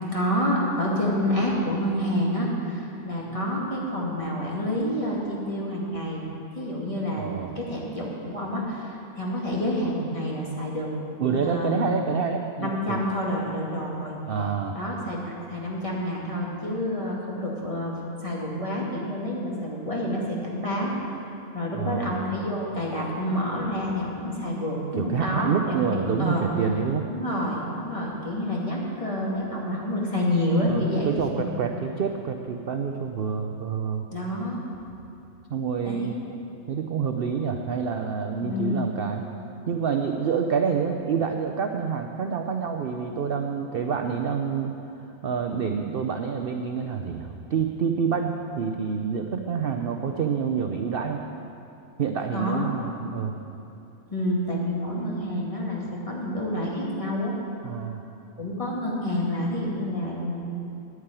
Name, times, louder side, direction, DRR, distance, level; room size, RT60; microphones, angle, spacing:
voice 1, 0.0-6.2 6.5-10.9 11.3-12.0 12.6-14.1 14.7-20.9 21.5-26.5 27.1-31.5 34.1-34.6 35.8-36.1 38.4-38.8 52.3-52.6 54.1-57.4 57.7-57.8 58.4-60.4, left 1 dB, 20° left, -4 dB, 2.2 m, -28 dB
voice 2, 7.2-7.5 11.2-13.0 14.3-14.8 21.7-22.1 24.9-27.1 30.7-34.1 35.5-36.2 36.7-39.2 39.7-44.7 45.2-51.2 52.0-53.3 57.6-58.0, right 6 dB, 55° right, 4 dB, 0.7 m, -27 dB
9.7 x 9.5 x 9.0 m, 2.8 s
omnidirectional pair, 1.5 m